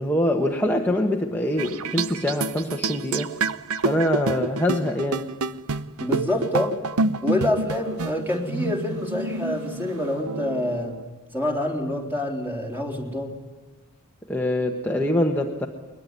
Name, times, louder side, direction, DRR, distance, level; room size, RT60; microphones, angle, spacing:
voice 1, 0.0-3.3 3.8-5.3 14.3-15.7, left 1 dB, 10° left, 1 dB, 1.4 m, -24 dB
sound 1, 1.6-11.0, right 3 dB, 70° right, 0.8 m, -28 dB
voice 2, 6.0-6.8 7.2-10.9 11.3-13.3, left 1 dB, 10° right, 1 dB, 3.8 m, -26 dB
22.0 x 21.5 x 9.7 m, 1.3 s
head